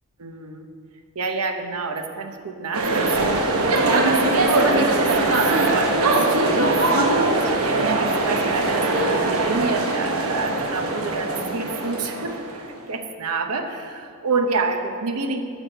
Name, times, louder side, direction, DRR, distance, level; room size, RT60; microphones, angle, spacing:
voice 1, 0.2-0.6 1.1-12.4 12.9-15.4, right 3 dB, 90° right, 6 dB, 0.9 m, -28 dB
sound 1, 2.7-12.6, right 2 dB, 70° right, 1.2 m, -21 dB
10.5 x 6.3 x 6.7 m, 2.3 s
head